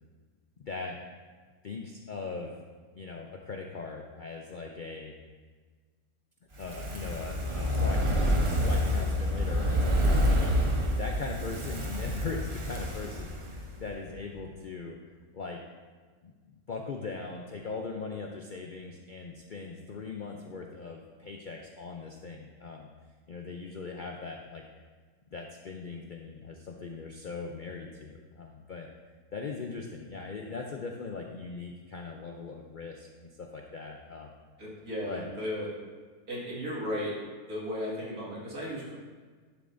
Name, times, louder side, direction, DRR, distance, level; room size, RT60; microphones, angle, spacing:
voice 1, 0.6-1.0 1.6-2.6 2.9-5.1 6.6-10.6 11.0-15.0 15.3-15.6 16.2-16.3 16.7-22.9 23.3-24.6 25.3-28.9 29.3-34.3 35.1-35.3, left 4 dB, 75° left, 2 dB, 0.4 m, -40 dB
Fire, 6.5-13.9 14.2-14.3, equal, 30° right, 0.6 m, -28 dB
voice 2, 34.6-35.7 36.3-37.1 37.4-38.9, equal, 75° right, -6 dB, 2.5 m, -35 dB
11.0 x 6.9 x 2.6 m, 1.5 s
omnidirectional pair, 1.6 m